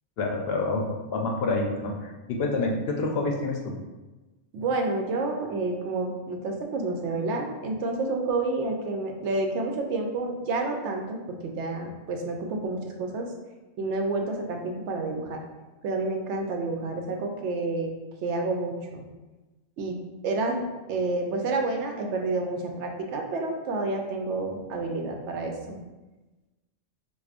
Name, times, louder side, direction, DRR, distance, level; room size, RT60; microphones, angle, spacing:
voice 1, 0.2-3.7, left 3 dB, 65° left, 1 dB, 0.7 m, -28 dB
voice 2, 4.5-11.2 11.4-13.3 13.8-15.4 15.8-17.9 18.2-19.0 19.8-20.0 20.2-25.8, right 3 dB, 80° right, 3 dB, 0.9 m, -29 dB
4.6 x 2.3 x 2.4 m, 1.1 s
omnidirectional pair, 1.2 m